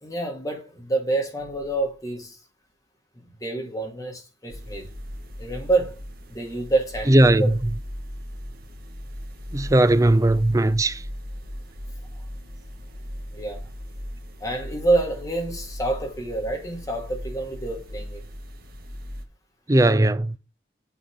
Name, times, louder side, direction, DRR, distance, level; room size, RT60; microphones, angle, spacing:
voice 1, 0.0-2.4 3.4-4.9 5.4-6.0 6.3-7.6 13.3-13.7 14.4-18.2, right 2 dB, 20° left, 2.5 m, -27 dB
sound 1, 4.5-19.2, equal, 55° right, 1.5 m, -38 dB
voice 2, 7.1-7.4 9.5-11.0 19.7-20.3, right 1 dB, 20° right, 0.5 m, -17 dB
8.1 x 4.4 x 6.3 m
head